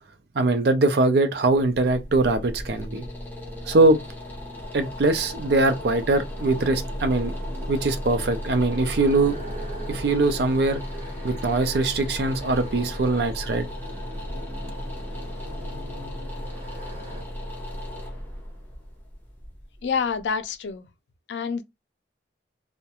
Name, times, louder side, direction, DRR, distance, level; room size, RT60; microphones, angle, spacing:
voice 1, 0.3-3.1 3.7-4.0 4.7-7.3 7.7-9.4 9.9-10.8 11.2-13.7, right 2 dB, 60° right, 0.5 m, -22 dB
sound 1, 1.5-20.4, equal, 10° left, 0.6 m, -35 dB
sound 2, 6.4-17.2, right 1 dB, 40° right, 1.1 m, -42 dB
voice 2, 19.8-20.9 21.3-21.6, left 6 dB, 80° left, 0.4 m, -27 dB
2.3 x 2.1 x 2.8 m
head